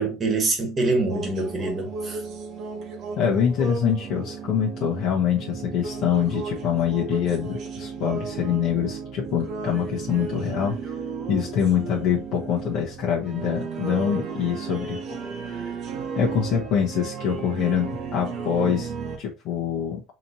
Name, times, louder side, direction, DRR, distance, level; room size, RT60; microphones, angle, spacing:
voice 1, 0.0-2.2, right 3 dB, 25° right, 1.3 m, -25 dB
sound 1, 0.8-19.2, right 5 dB, 45° right, 0.8 m, -34 dB
voice 2, 3.2-10.9 11.3-15.0 15.5-15.7 16.2-18.9 19.2-20.0, left 8 dB, 55° left, 0.9 m, -25 dB
4.2 x 2.9 x 2.7 m
cardioid pair, 150°, 0 cm